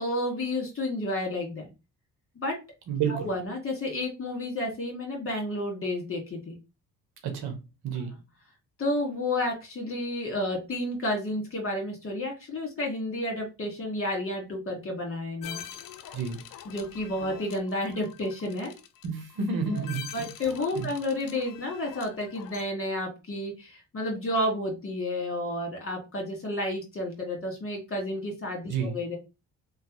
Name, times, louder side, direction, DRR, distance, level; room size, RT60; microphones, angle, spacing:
voice 1, 0.0-1.7 2.3-2.5 3.1-6.6 8.8-15.6 16.6-18.7 19.7-19.8 20.1-29.2, left 1 dB, 35° left, 1.8 m, -31 dB
voice 2, 2.9-3.3 7.2-7.6 7.8-8.1 16.1-16.4 19.0-20.1 20.7-20.9 28.7-28.9, right 5 dB, 70° right, 1.0 m, -30 dB
sound 1, 15.4-22.6, left 9 dB, 60° left, 0.6 m, -45 dB
3.0 x 2.3 x 3.0 m
supercardioid pair, 55°, 39 cm